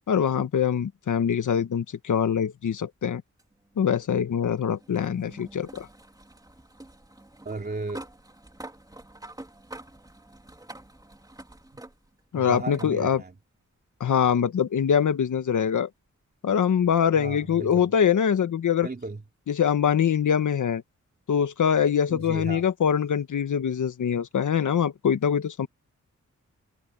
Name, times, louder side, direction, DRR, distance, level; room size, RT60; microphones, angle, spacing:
voice 1, 0.1-3.2 3.8-5.9 12.3-13.2 14.0-15.9 16.4-18.9 19.5-20.8 21.3-25.7, left 8 dB, 80° left, 1.5 m, -23 dB
sound 1, 3.4-12.3 12.7-12.9 14.3-14.4 17.2-17.3, right 1 dB, 10° right, 3.5 m, -47 dB
voice 2, 7.4-8.1 11.7-11.8 12.3-13.3 17.2-17.9 18.8-19.2 22.1-22.6, right 3 dB, 30° right, 3.1 m, -35 dB
wide cardioid pair, 105°, 30 cm